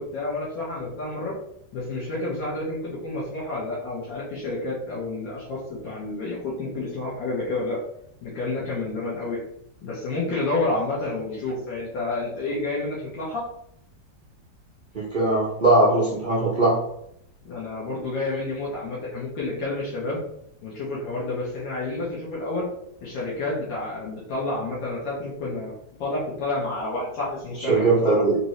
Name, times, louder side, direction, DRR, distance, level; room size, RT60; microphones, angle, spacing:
voice 1, 0.0-1.3 1.7-7.8 8.2-9.4 9.8-13.5 17.4-20.2 20.6-22.7 23.0-25.7 26.0-28.2, left 2 dB, 85° left, -7 dB, 1.8 m, -29 dB
voice 2, 14.9-16.7 27.7-28.4, right 2 dB, 50° right, -6 dB, 0.6 m, -20 dB
4.2 x 2.7 x 3.1 m, 0.73 s
omnidirectional pair, 2.0 m